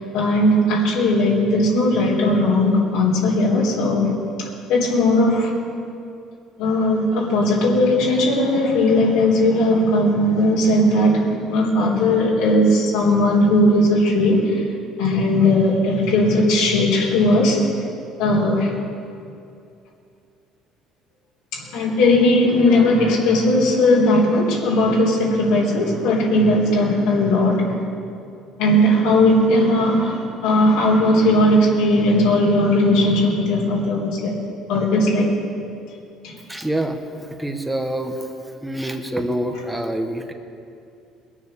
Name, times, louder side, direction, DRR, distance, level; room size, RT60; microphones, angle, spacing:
voice 1, 0.1-4.1 4.7-5.5 6.6-14.6 15.0-17.7 18.2-18.7 21.5-27.8 28.6-34.4 34.7-35.3 36.2-36.3, left 1 dB, 90° left, -5 dB, 3.6 m, -18 dB
voice 2, 36.5-38.3 38.6-40.3, right 1 dB, 5° right, 4 dB, 1.1 m, -26 dB
21.5 x 7.3 x 6.7 m, 2.6 s
cardioid pair, 130°, 0 cm